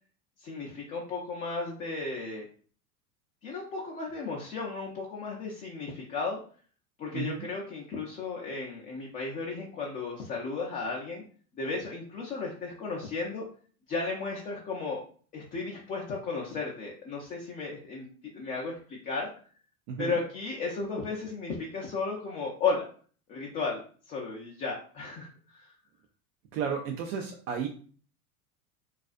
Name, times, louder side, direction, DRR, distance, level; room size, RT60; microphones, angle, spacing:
voice 1, 0.4-2.5 3.4-6.4 7.0-11.3 11.6-13.5 13.9-15.0 15.3-18.1 18.3-19.3 20.0-22.9 23.3-25.7, left 4 dB, 20° left, -2 dB, 0.4 m, -34 dB
voice 2, 7.1-7.5 19.9-20.2 26.5-27.7, right 7 dB, 60° right, 1 dB, 0.5 m, -33 dB
2.4 x 2.3 x 2.4 m, 0.43 s
hypercardioid pair, 90°, 44 cm